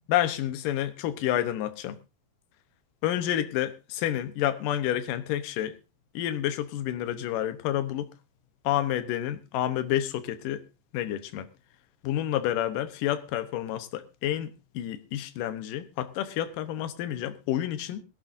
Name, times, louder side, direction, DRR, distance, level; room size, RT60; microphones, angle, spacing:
voice 1, 0.1-2.0 3.0-5.7 6.1-8.1 8.6-10.6 10.9-11.5 12.0-14.5 14.7-18.0, left 12 dB, 70° left, 10 dB, 2.5 m, -29 dB
22.0 x 12.0 x 2.7 m, 0.27 s
omnidirectional pair, 4.3 m